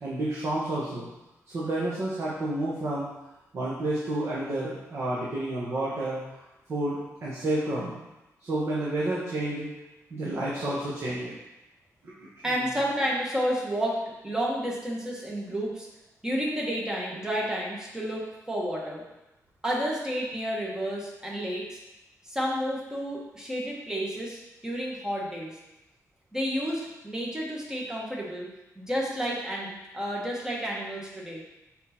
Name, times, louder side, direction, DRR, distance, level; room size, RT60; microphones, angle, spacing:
voice 1, 0.0-1.1 1.5-3.1 3.5-6.4 6.7-8.0 8.4-9.7 10.1-11.3 12.0-12.4, right 1 dB, 50° right, -7 dB, 1.3 m, -30 dB
voice 2, 12.4-14.0 14.2-15.9 16.2-19.0 19.6-21.8 22.2-25.6 26.3-28.5 28.7-31.4, equal, 10° right, -3 dB, 1.4 m, -31 dB
6.5 x 4.0 x 4.4 m, 0.97 s
wide cardioid pair, 145°, 6 cm